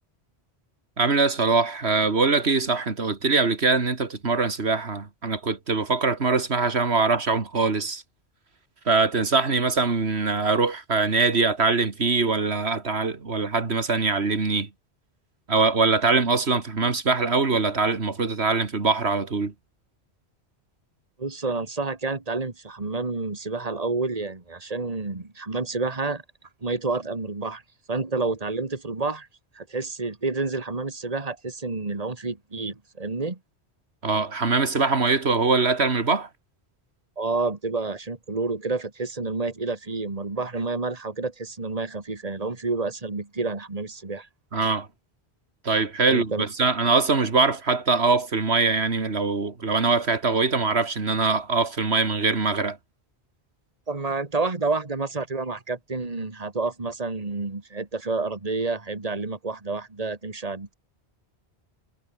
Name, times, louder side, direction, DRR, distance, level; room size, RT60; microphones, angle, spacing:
voice 1, 1.0-8.0 8.9-14.7 15.5-19.5 34.0-36.3 44.5-44.9 45.6-52.8, right 4 dB, 75° right, 2.5 m, -23 dB
voice 2, 21.2-26.2 26.6-27.6 27.9-29.3 29.5-33.4 37.2-44.3 46.1-46.4 53.9-60.7, right 3 dB, 35° right, 2.3 m, -29 dB
omnidirectional pair, 1.1 m